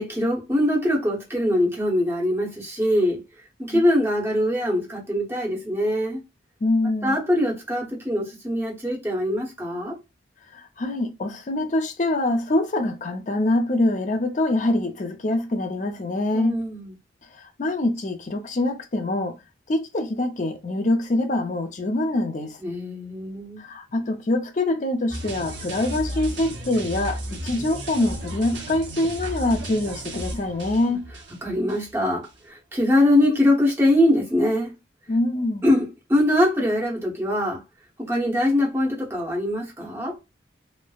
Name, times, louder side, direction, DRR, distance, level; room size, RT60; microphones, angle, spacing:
voice 1, 0.0-3.2 3.6-6.2 7.0-10.0 16.3-16.9 22.6-23.6 31.4-34.7 35.6-37.6 38.0-40.2, left 1 dB, 15° right, 0.8 m, -22 dB
voice 2, 6.6-7.2 10.5-16.6 17.4-19.4 19.7-22.6 23.6-31.1 35.1-35.6, left 2 dB, 40° left, 0.5 m, -24 dB
sound 1, 25.1-31.9 32.2-32.4, right 1 dB, 80° right, 0.7 m, -34 dB
3.1 x 2.0 x 2.3 m
head